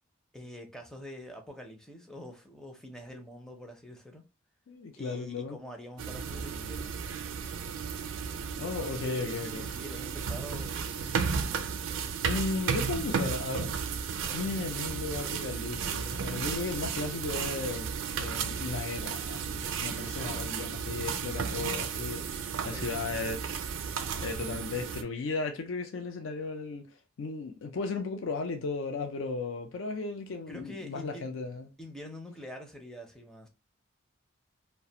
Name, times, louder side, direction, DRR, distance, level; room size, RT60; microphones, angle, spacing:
voice 1, 0.3-4.2 5.0-6.9 8.8-11.6 14.2-14.4 20.0-20.5 22.7-23.0 30.5-31.3 31.8-33.5, equal, 5° left, 0.5 m, -46 dB
voice 2, 4.7-5.6 8.6-9.7 11.6-11.7 12.2-13.7 14.3-23.6 24.2-31.7, left 4 dB, 65° left, 0.4 m, -35 dB
sound 1, 6.0-25.0, right 6 dB, 65° right, 0.4 m, -34 dB
2.4 x 2.1 x 2.6 m
head